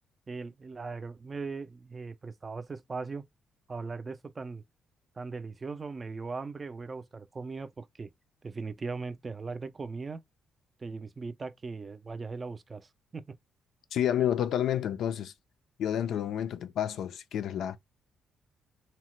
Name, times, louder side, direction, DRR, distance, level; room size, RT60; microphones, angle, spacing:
voice 1, 0.3-3.2 3.7-4.6 5.2-8.1 8.4-10.2 10.8-13.2, right 4 dB, 30° right, 0.3 m, -39 dB
voice 2, 13.9-15.3 15.8-17.8, left 10 dB, 75° left, 0.3 m, -29 dB
2.8 x 2.1 x 2.9 m
cardioid pair, 90°, 0 cm